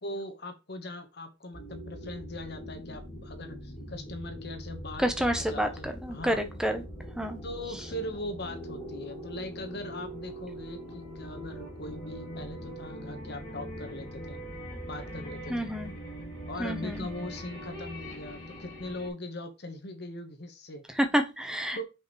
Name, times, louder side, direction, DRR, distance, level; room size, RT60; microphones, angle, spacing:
voice 1, 0.0-6.4 7.4-14.4 14.9-15.7 16.5-20.8 21.7-21.8, left 1 dB, 55° left, 7 dB, 1.2 m, -40 dB
sound 1, 1.5-19.1, equal, 20° left, 2.8 m, -42 dB
voice 2, 5.0-6.8 7.2-7.4 15.5-15.9 16.6-17.1 21.0-21.8, equal, 5° right, 6 dB, 0.8 m, -29 dB
6.5 x 5.2 x 3.1 m, 0.26 s
head